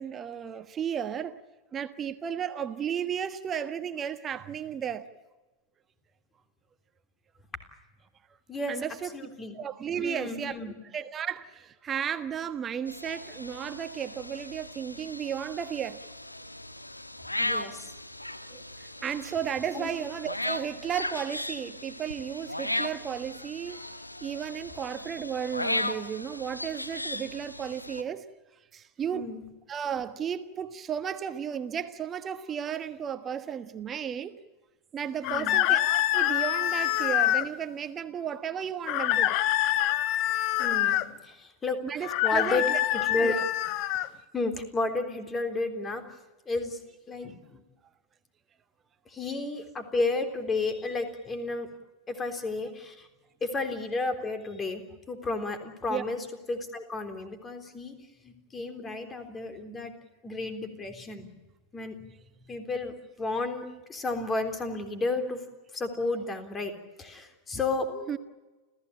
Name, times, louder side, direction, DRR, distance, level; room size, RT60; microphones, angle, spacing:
voice 1, 0.0-1.4 1.7-5.1 8.7-9.1 9.5-10.6 10.9-16.0 18.5-23.8 24.2-28.2 28.7-29.3 29.7-34.4 34.9-39.4 41.8-42.8 43.2-43.4 55.9-56.0 67.9-68.2, right 8 dB, 25° right, 1.4 m, -34 dB
voice 2, 8.5-8.8 9.1-9.6 10.0-10.7 17.4-17.9 19.7-19.9 29.1-29.4 35.2-35.7 40.6-41.9 42.2-42.7 42.9-43.4 44.3-46.1 46.5-46.8 47.1-47.6 49.1-51.7 52.1-53.1 53.4-59.9 60.2-61.3 61.7-62.1 62.5-65.4 65.7-66.7 67.0-67.9, left 3 dB, 20° left, 3.6 m, -32 dB
sound 1, 12.9-28.0, left 1 dB, 85° left, 1.3 m, -37 dB
sound 2, 35.2-37.5 38.9-41.1 42.0-44.1, left 13 dB, 40° left, 0.9 m, -26 dB
29.5 x 15.5 x 8.9 m
figure-of-eight pair, 90°, 0 cm